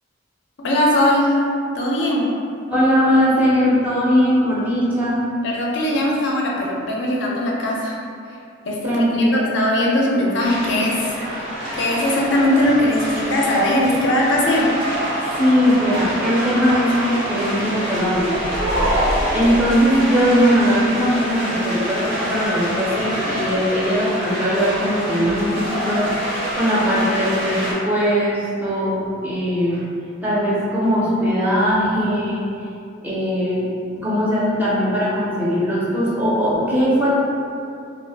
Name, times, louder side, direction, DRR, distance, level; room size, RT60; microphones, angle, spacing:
voice 1, 0.6-1.4 1.7-2.3 5.4-8.0 8.7-11.2 11.8-14.7, left 1 dB, 65° left, -3 dB, 0.4 m, -20 dB
voice 2, 2.7-5.2 8.8-9.4 15.3-18.4 18.8-26.1 26.5-29.8 30.2-32.4 33.0-37.1, equal, 10° right, -8 dB, 0.5 m, -20 dB
sound 1, 10.4-27.7, equal, 80° right, 0.9 m, -27 dB
sound 2, 18.0-20.5, equal, 60° right, 0.6 m, -23 dB
2.7 x 2.0 x 3.2 m, 2.5 s
head